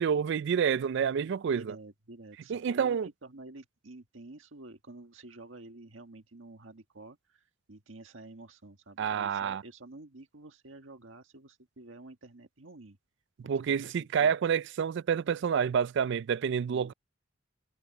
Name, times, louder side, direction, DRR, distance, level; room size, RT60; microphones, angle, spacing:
voice 1, 0.0-1.7 2.5-3.1 9.0-9.6 13.5-16.9, right 7 dB, 65° right, 0.3 m, -28 dB
voice 2, 1.2-13.0 13.4-14.3 16.6-16.9, right 2 dB, 80° right, 1.6 m, -50 dB
head